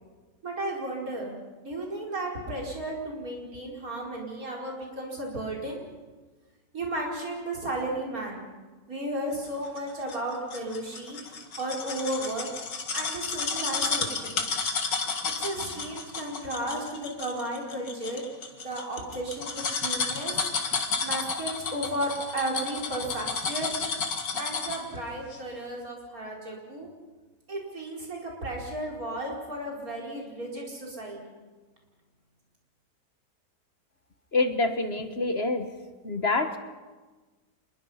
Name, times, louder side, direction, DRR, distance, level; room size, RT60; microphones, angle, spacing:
voice 1, 0.4-1.3 1.6-5.8 6.7-8.4 8.9-12.5 12.9-14.4 14.9-15.1 15.4-18.2 18.6-20.5 21.0-23.7 24.4-26.9 27.5-31.3, right 1 dB, 55° right, -2 dB, 5.1 m, -34 dB
sound 1, 9.8-24.9 25.3-25.4, left 4 dB, 85° left, 2.6 m, -32 dB
voice 2, 34.3-35.7 36.0-36.6, left 3 dB, 40° left, 8 dB, 1.4 m, -26 dB
26.5 x 21.5 x 5.7 m, 1.3 s
omnidirectional pair, 1.8 m